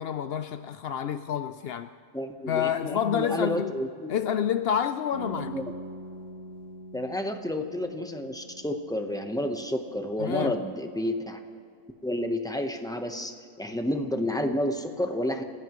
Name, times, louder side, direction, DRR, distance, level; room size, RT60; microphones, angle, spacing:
voice 1, 0.0-1.9 2.5-3.8 4.1-5.6 10.2-10.6, left 9 dB, 75° left, 0.5 m, -28 dB
voice 2, 2.1-4.1 5.4-5.6 6.9-11.4 12.0-13.3 13.6-15.4, left 1 dB, 5° left, 0.7 m, -30 dB
sound 1, 5.1-10.9, right 1 dB, 25° right, 5.7 m, -43 dB
29.0 x 16.0 x 3.1 m
omnidirectional pair, 1.6 m